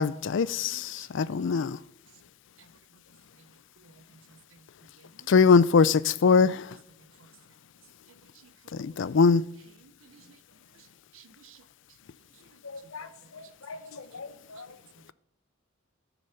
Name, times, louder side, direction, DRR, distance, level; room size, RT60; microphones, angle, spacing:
voice 1, 0.0-1.8 5.3-6.7 8.7-9.4, left 5 dB, 60° left, 0.4 m, -22 dB
voice 2, 0.7-1.2 3.8-3.9 4.3-4.4 5.0-5.3 9.1-9.2 9.8-10.4 11.1-11.6, right 7 dB, 65° right, 0.6 m, -56 dB
voice 3, 12.6-14.8, left 4 dB, 90° left, 0.9 m, -43 dB
13.5 x 7.0 x 5.6 m
head